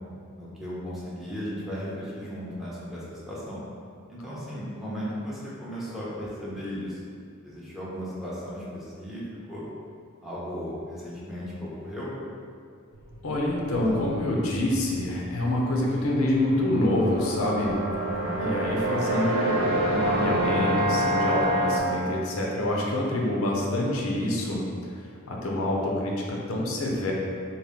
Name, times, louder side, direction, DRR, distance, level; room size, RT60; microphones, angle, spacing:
voice 1, 0.4-3.6 4.1-7.2 7.4-9.6 10.2-12.1 13.7-14.0 18.0-18.4, equal, ahead, -8 dB, 0.7 m, -36 dB
sound 1, 12.9-21.7, right 1 dB, 80° right, 1.2 m, -45 dB
voice 2, 13.2-17.8 18.4-24.6 25.3-27.1, left 1 dB, 80° left, -2 dB, 0.6 m, -26 dB
sound 2, 15.8-21.8, right 1 dB, 65° right, 0.5 m, -27 dB
4.0 x 2.1 x 3.5 m, 2.3 s
head